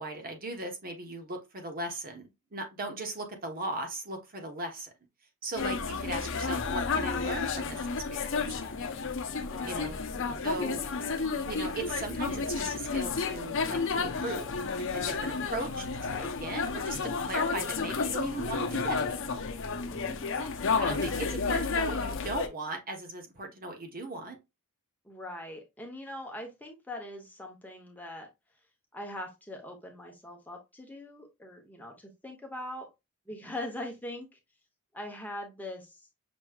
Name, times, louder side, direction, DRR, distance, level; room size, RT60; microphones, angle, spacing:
voice 1, 0.0-4.9 5.4-8.3 9.7-10.0 10.4-10.8 11.4-14.5 14.8-19.2 20.8-24.4 33.5-33.6, right 2 dB, 45° right, 1.1 m, -38 dB
sound 1, 5.6-22.5, left 4 dB, 60° left, 0.7 m, -31 dB
voice 2, 9.4-9.9 10.5-11.0 19.9-21.9 25.0-28.3 28.9-32.9 33.3-34.3 34.9-36.1, left 1 dB, 10° left, 1.0 m, -42 dB
6.1 x 3.1 x 2.3 m
head